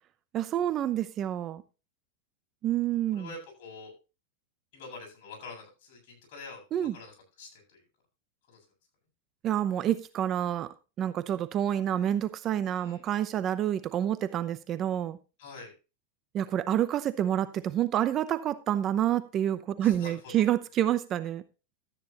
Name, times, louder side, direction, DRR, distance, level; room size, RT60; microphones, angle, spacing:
voice 1, 0.3-1.6 2.6-3.3 6.7-6.9 9.4-10.7 11.0-15.2 16.3-21.4, right 11 dB, 30° right, 13 dB, 0.8 m, -28 dB
voice 2, 3.1-3.9 4.7-7.8 8.5-8.7 12.8-13.0 15.4-15.7 19.8-20.3, left 3 dB, 55° left, 0 dB, 7.8 m, -46 dB
13.0 x 9.4 x 3.0 m, 0.30 s
supercardioid pair, 145°, 0 cm